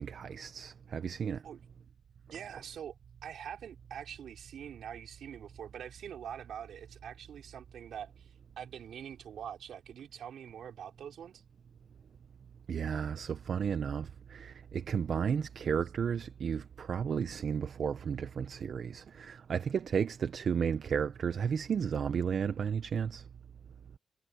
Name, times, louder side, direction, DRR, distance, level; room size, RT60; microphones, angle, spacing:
voice 1, 0.0-1.4 12.7-23.2, right 7 dB, 65° right, 0.8 m, -33 dB
voice 2, 2.3-2.9 3.2-11.4, right 9 dB, 80° right, 3.9 m, -44 dB
cardioid pair, 75°, 0 cm